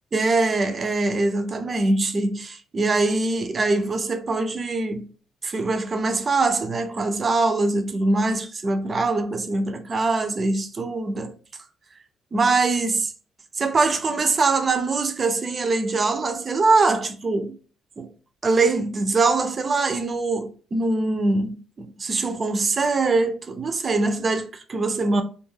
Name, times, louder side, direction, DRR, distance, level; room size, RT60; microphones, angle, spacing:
voice 1, 0.1-5.1 5.4-11.3 12.3-13.1 13.6-17.6 18.0-18.1 18.4-25.2, right 3 dB, 25° right, 0.3 m, -23 dB
2.4 x 2.2 x 3.1 m
cardioid pair, 170°, 0 cm